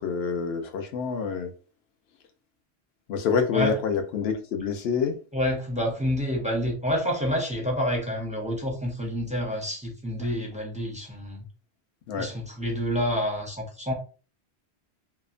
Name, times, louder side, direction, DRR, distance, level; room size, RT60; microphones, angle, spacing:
voice 1, 0.0-1.5 3.1-5.2 12.1-12.3, left 6 dB, 70° left, 0.8 m, -27 dB
voice 2, 5.3-11.5 12.2-13.9, equal, 10° right, 0.4 m, -28 dB
2.8 x 2.1 x 2.4 m
omnidirectional pair, 1.1 m